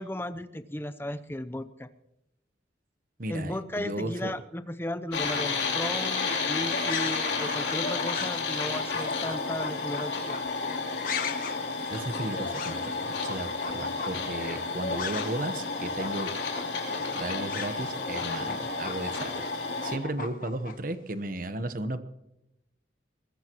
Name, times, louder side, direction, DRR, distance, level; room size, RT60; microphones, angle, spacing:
voice 1, 0.0-1.9 3.3-10.4, left 1 dB, 10° left, 12 dB, 0.7 m, -35 dB
voice 2, 3.2-4.3 11.9-16.3 17.2-22.0, right 1 dB, 50° right, 10 dB, 1.1 m, -35 dB
sound 1, 5.1-20.0, left 4 dB, 70° left, 3.4 m, -32 dB
sound 2, 5.8-15.5 15.7-20.7, left 5 dB, 50° left, 1.2 m, -38 dB
22.0 x 20.0 x 3.1 m, 0.87 s
head